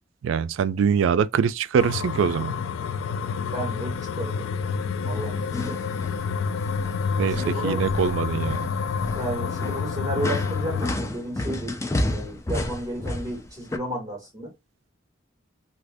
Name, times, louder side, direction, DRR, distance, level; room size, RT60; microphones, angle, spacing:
voice 1, 0.2-2.5 7.2-8.7, right 7 dB, 80° right, 0.3 m, -23 dB
sound 1, 1.8-10.9, left 5 dB, 85° left, 0.3 m, -28 dB
voice 2, 3.4-4.7 5.0-5.9 7.2-7.9 9.1-11.8 12.1-14.5, right 1 dB, 20° right, 1.3 m, -33 dB
sound 2, 5.0-6.2 6.6-7.0 7.2-13.8, left 1 dB, 15° left, 0.4 m, -31 dB
2.8 x 2.5 x 3.3 m
head